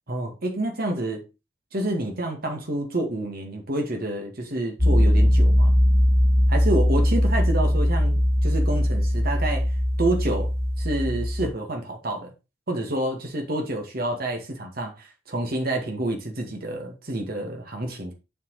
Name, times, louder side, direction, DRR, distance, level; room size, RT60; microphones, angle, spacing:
voice 1, 0.1-1.3 1.7-5.7 6.5-9.7 10.0-10.5 10.8-12.3 12.7-18.1, right 1 dB, 50° right, 2.0 m, -28 dB
sound 1, 4.8-11.5, equal, 15° right, 2.3 m, -20 dB
7.0 x 4.6 x 4.8 m
head